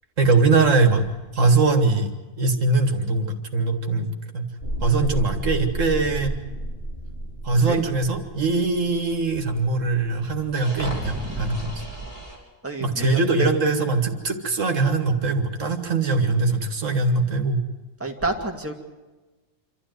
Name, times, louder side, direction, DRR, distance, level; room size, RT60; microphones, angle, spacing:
voice 1, 0.2-1.1 1.3-2.1 2.4-4.5 4.8-6.4 7.4-11.8 12.8-17.6, right 3 dB, 75° right, 5 dB, 2.3 m, -21 dB
sound 1, 4.6-12.4, right 1 dB, 50° left, 5.3 m, -33 dB
voice 2, 10.8-11.9 12.6-13.5 18.0-18.7, right 3 dB, 10° right, 1 dB, 2.3 m, -29 dB
27.0 x 13.0 x 9.5 m, 1.2 s
omnidirectional pair, 1.3 m